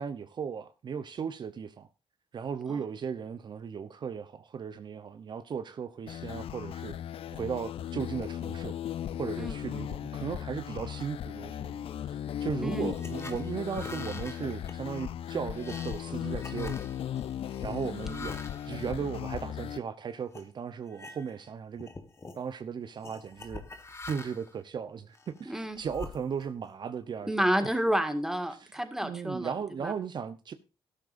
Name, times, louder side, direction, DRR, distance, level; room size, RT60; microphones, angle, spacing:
voice 1, 0.0-1.9 2.3-7.0 7.3-8.8 9.2-16.9 17.6-21.9 22.3-23.6 24.1-27.3 29.0-30.5, right 7 dB, 50° right, 0.9 m, -36 dB
sound 1, 6.1-19.8, left 10 dB, 70° left, 0.6 m, -37 dB
voice 2, 12.6-12.9 25.5-25.8 27.3-29.5 29.8-29.9, right 1 dB, 5° right, 2.0 m, -30 dB
sound 2, 12.7-19.8 20.3-20.5 20.9-21.5 21.8-22.4 23.0-24.6 25.1-26.7, left 3 dB, 25° left, 1.6 m, -45 dB
13.5 x 12.0 x 2.6 m
cardioid pair, 110°, 10 cm